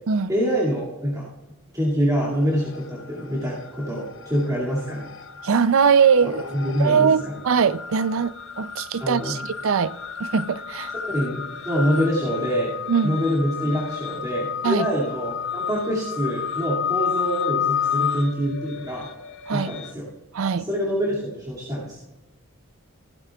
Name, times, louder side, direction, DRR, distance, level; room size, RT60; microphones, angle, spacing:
voice 1, 0.3-1.3 1.7-5.1 6.4-7.4 9.0-9.4 11.0-12.7 13.0-19.1 19.5-20.1 20.5-22.0, equal, 15° right, 2.3 m, -25 dB
sound 1, 2.4-3.0 3.3-19.9, left 8 dB, 60° left, 0.8 m, -31 dB
voice 2, 5.4-6.4 6.8-10.9 12.9-13.2 14.6-14.9 19.5-19.7 20.3-20.7, right 6 dB, 70° right, 0.5 m, -21 dB
16.0 x 13.5 x 2.4 m
head